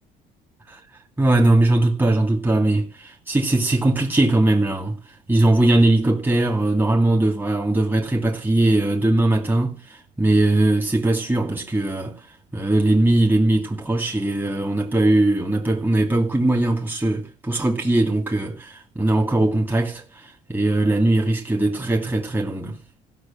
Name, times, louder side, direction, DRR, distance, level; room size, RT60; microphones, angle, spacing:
voice 1, 1.2-5.0 5.3-12.2 12.5-22.8, right 2 dB, 10° right, 2.6 m, -20 dB
15.0 x 6.6 x 7.5 m
cardioid pair, 110°, 17 cm